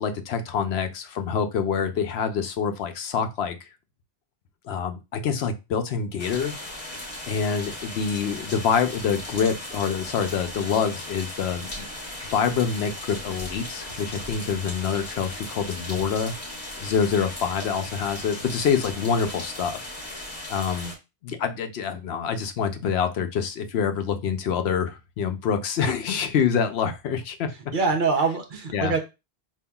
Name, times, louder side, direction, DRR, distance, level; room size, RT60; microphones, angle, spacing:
voice 1, 0.0-3.7 4.6-7.0 7.3-11.9 12.3-16.3 16.8-19.9 20.5-20.9 21.2-27.5 28.7-28.9, left 6 dB, 80° left, 8 dB, 0.9 m, -26 dB
sound 1, 6.2-20.9, left 1 dB, 30° left, 1.1 m, -37 dB
voice 2, 27.7-29.0, right 4 dB, 55° right, 5 dB, 0.8 m, -24 dB
5.3 x 2.5 x 2.3 m, 0.25 s
omnidirectional pair, 1.1 m